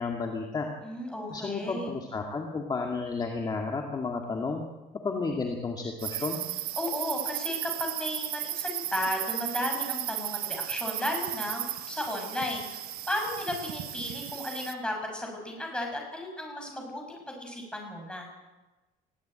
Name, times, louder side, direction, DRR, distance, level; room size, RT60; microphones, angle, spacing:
voice 1, 0.0-0.7 1.3-4.6 5.0-6.5, left 4 dB, 25° left, 2 dB, 2.1 m, -32 dB
voice 2, 0.8-2.0 6.8-18.3, left 1 dB, 5° left, 1 dB, 6.4 m, -34 dB
sound 1, 6.0-14.7, right 13 dB, 70° right, 1.3 m, -35 dB
21.0 x 16.0 x 8.9 m, 1.1 s
cardioid pair, 160°, 17 cm